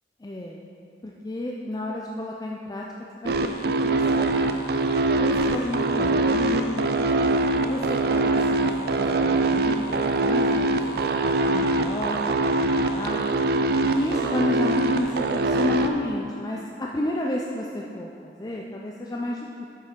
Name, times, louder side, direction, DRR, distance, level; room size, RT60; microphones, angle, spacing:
voice 1, 0.2-0.7 1.0-2.8 3.2-3.3 3.8-4.4 5.2-7.1 7.5-8.7 9.0-13.2 13.9-19.7, left 1 dB, 20° left, -2 dB, 0.4 m, -31 dB
sound 1, 3.3-15.9, right 2 dB, 60° right, 0.4 m, -23 dB
7.8 x 5.4 x 5.1 m, 2.6 s
head